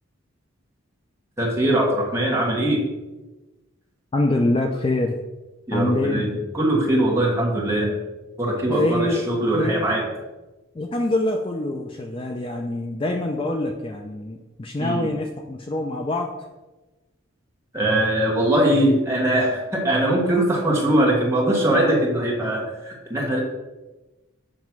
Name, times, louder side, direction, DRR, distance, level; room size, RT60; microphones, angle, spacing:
voice 1, 1.4-2.8 5.7-7.9 8.4-10.0 14.8-15.1 17.7-23.4, right 1 dB, 15° right, -3 dB, 1.4 m, -21 dB
voice 2, 4.1-5.2 5.7-6.4 8.7-9.3 9.5-9.8 10.7-16.3, left 2 dB, 25° left, 2 dB, 0.4 m, -25 dB
7.4 x 3.0 x 5.9 m, 1.1 s
head